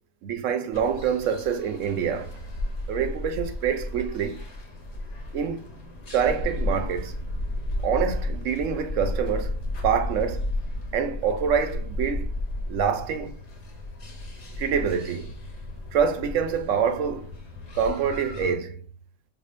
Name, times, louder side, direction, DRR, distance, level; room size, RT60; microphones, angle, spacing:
voice 1, 0.2-2.3 2.9-4.4 5.3-5.6 6.1-7.2 7.8-9.5 9.8-10.5 10.9-12.3 12.7-13.3 14.6-15.3 15.9-17.3 17.8-18.8, right 7 dB, 80° right, 1.0 m, -26 dB
sound 1, 0.7-18.5, left 1 dB, 60° left, 1.2 m, -33 dB
4.8 x 2.4 x 2.5 m
omnidirectional pair, 1.3 m